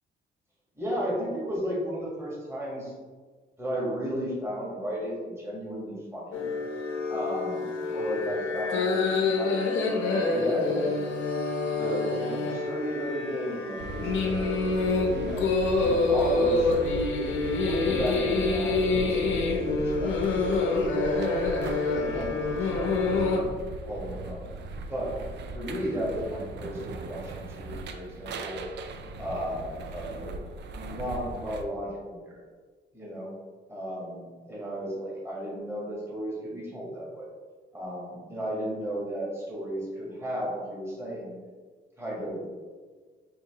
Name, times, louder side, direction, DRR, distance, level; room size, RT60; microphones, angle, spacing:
voice 1, 0.8-2.9 3.6-6.4 7.1-9.6 10.3-10.9 11.7-14.6 14.9-15.5 15.8-16.7 17.6-23.6 23.9-24.5 24.9-25.2 25.5-28.7 29.2-30.4 30.7-32.4 32.9-33.3 33.7-37.3 37.7-41.4 42.0-42.4, equal, 10° right, -5 dB, 1.3 m, -34 dB
sound 1, 6.3-23.4, left 3 dB, 75° left, 0.8 m, -27 dB
sound 2, 13.8-31.6, right 2 dB, 60° right, 0.4 m, -38 dB
5.0 x 2.7 x 2.8 m, 1.5 s
cardioid pair, 90°, 20 cm